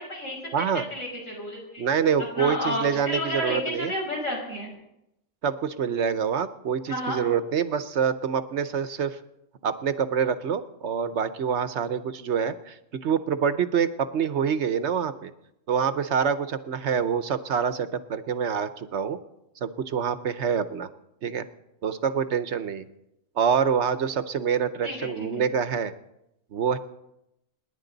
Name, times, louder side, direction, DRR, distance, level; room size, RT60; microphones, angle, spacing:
voice 1, 0.0-1.8 2.2-4.7 6.9-7.2 24.8-25.3, left 1 dB, 75° left, -2 dB, 6.2 m, -31 dB
voice 2, 0.5-0.9 1.8-3.9 5.4-9.2 9.6-15.3 15.7-19.2 19.6-20.9 21.2-21.4 21.8-22.8 23.4-25.9 26.5-26.8, right 7 dB, 65° right, 12 dB, 1.0 m, -26 dB
27.5 x 10.5 x 4.0 m, 0.86 s
omnidirectional pair, 1.3 m